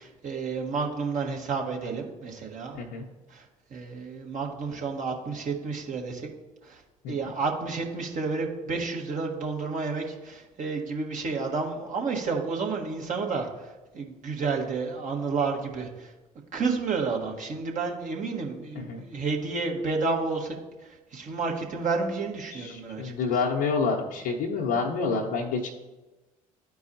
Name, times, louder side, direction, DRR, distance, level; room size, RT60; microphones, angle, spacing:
voice 1, 0.0-2.8 3.3-3.4 3.7-6.3 6.6-6.8 7.1-16.1 16.5-20.5 20.8-23.1, right 4 dB, 45° right, 0 dB, 1.5 m, -31 dB
voice 2, 22.5-25.7, left 4 dB, 60° left, -4 dB, 0.9 m, -28 dB
13.0 x 4.6 x 2.7 m, 1.1 s
hypercardioid pair, 55°, 18 cm